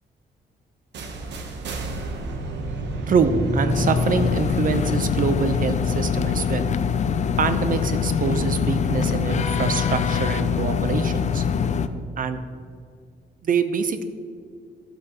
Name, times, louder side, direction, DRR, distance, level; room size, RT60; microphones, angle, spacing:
sound 1, 0.9-6.8, right 2 dB, 80° right, 1.0 m, -33 dB
voice 1, 3.1-6.7 7.4-11.4 12.2-12.4 13.4-14.0, right 5 dB, 50° right, 10 dB, 0.8 m, -25 dB
sound 2, 3.2-7.7, left 1 dB, 35° right, 1.7 m, -30 dB
sound 3, 3.7-11.9, left 7 dB, 40° left, 0.5 m, -24 dB
12.5 x 7.8 x 3.0 m, 2.2 s
cardioid pair, 100°, 18 cm